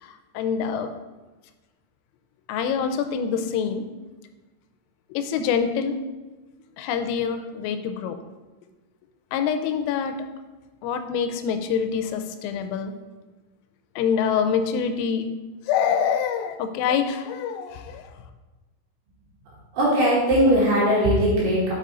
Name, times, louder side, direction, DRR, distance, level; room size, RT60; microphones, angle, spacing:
voice 1, 0.0-0.9 2.5-3.9 5.1-6.0 6.8-8.2 9.3-10.2 10.8-12.9 14.0-15.3 15.7-18.1, left 7 dB, 90° left, 8 dB, 3.2 m, -25 dB
voice 2, 19.7-21.7, equal, 65° right, -6 dB, 2.9 m, -19 dB
6.7 x 5.5 x 3.8 m, 1.2 s
omnidirectional pair, 5.8 m